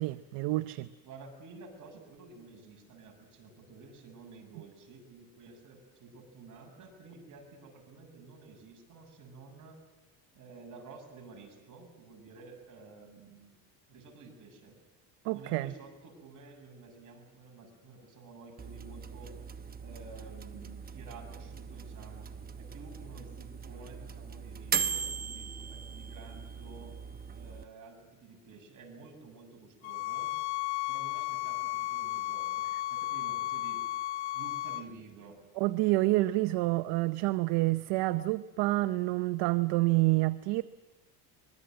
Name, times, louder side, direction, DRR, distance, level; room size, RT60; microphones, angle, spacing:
voice 1, 0.0-0.9 15.2-15.7 35.6-40.6, right 20 dB, 70° right, 0.8 m, -28 dB
voice 2, 1.0-9.8 10.3-13.5 13.9-14.8 15.3-19.4 19.8-27.0 27.3-30.3 30.9-33.8 34.3-35.4, right 4 dB, 45° right, 7.5 m, -51 dB
sound 1, 18.6-27.6, right 6 dB, 20° right, 0.9 m, -39 dB
sound 2, 29.8-34.8, left 17 dB, 75° left, 1.0 m, -34 dB
25.0 x 21.5 x 7.8 m
cardioid pair, 120°, 42 cm